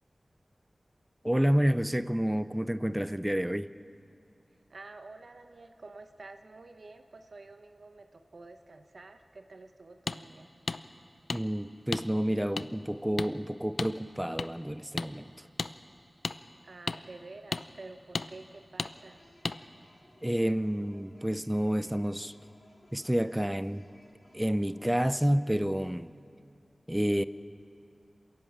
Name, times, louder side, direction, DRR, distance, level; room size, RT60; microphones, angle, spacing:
voice 1, 1.2-3.7 11.3-15.3 20.2-22.3 22.9-23.9 24.3-26.1 26.9-27.2, equal, 10° right, 0.5 m, -29 dB
voice 2, 4.7-10.5 16.6-19.2, right 3 dB, 75° right, 1.0 m, -49 dB
sound 1, 10.1-10.2 10.7-10.8 11.3-11.4 11.9-12.0 12.6-12.7 13.2-13.3 13.8-13.9 14.4-14.5 15.0-15.1 15.6-15.7 16.2-16.4 16.9-17.0 17.5-17.6 18.1-18.3 18.8-18.9 19.4-19.6, left 3 dB, 80° left, 0.5 m, -32 dB
sound 2, 18.9-25.9, left 1 dB, 60° left, 4.0 m, -61 dB
28.0 x 11.0 x 8.7 m
wide cardioid pair, 70°, 0 cm